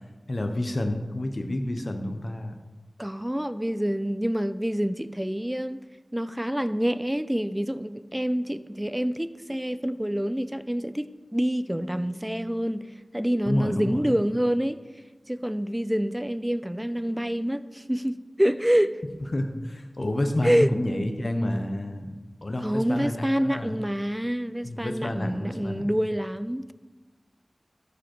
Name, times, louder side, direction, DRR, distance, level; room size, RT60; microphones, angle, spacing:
voice 1, 0.3-2.5 13.5-14.1 19.3-22.2 22.4-23.7 24.6-26.0, left 1 dB, 50° left, 6 dB, 0.9 m, -29 dB
voice 2, 3.0-5.9 6.1-14.8 15.3-19.0 20.4-20.7 22.6-26.7, equal, 10° right, 13 dB, 0.4 m, -27 dB
13.0 x 5.1 x 4.5 m, 1.2 s
wide cardioid pair, 65°, 0 cm